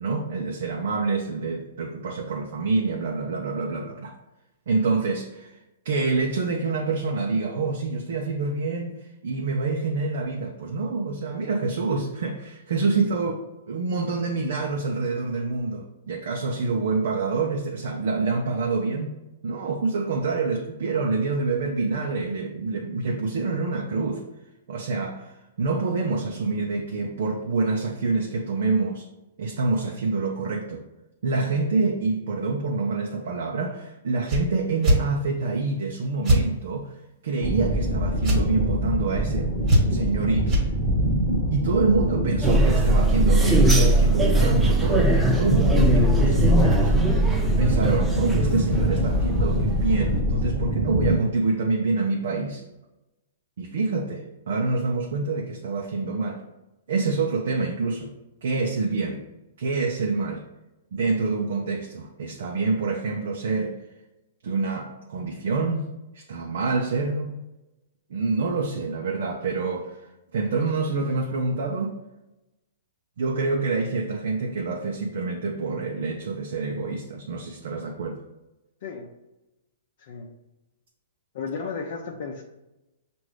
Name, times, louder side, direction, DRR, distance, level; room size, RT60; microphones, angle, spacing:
voice 1, 0.0-4.1 4.7-5.6 5.8-13.4 13.7-19.2 19.4-24.2 24.7-29.0 29.4-30.8 31.2-36.9 37.2-39.5 39.9-40.6 41.5-46.9 47.6-52.6 53.6-56.4 56.9-58.1 58.4-59.2 59.6-60.4 60.9-63.8 64.4-67.3 68.1-70.0 70.3-71.9 73.2-78.2, right 3 dB, 70° right, 0 dB, 0.6 m, -26 dB
sound 1, 34.3-34.4 34.8-35.0 36.2-36.4 38.2-38.4 39.7-40.1 40.5-40.7, equal, 25° right, 1.4 m, -20 dB
sound 2, 37.4-51.2, equal, 20° left, 1.0 m, -24 dB
sound 3, 42.4-50.2, right 1 dB, 10° right, 0.5 m, -22 dB
voice 2, 80.0-80.3 81.3-82.4, left 5 dB, 60° left, 0 dB, 0.6 m, -34 dB
6.0 x 2.6 x 3.3 m, 0.98 s
hypercardioid pair, 135°, 0 cm